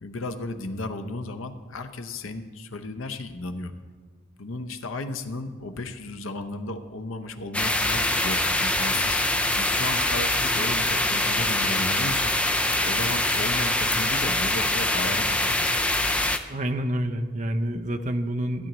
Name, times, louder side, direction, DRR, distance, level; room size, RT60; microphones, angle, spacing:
voice 1, 0.0-3.7 4.4-9.2 9.6-12.3 12.8-15.8, left 2 dB, 90° left, 8 dB, 0.7 m, -34 dB
sound 1, 7.5-16.4, left 1 dB, 5° left, 0.3 m, -24 dB
voice 2, 16.5-18.7, right 1 dB, 40° right, 5 dB, 0.6 m, -28 dB
15.5 x 10.0 x 3.0 m, 1.5 s
head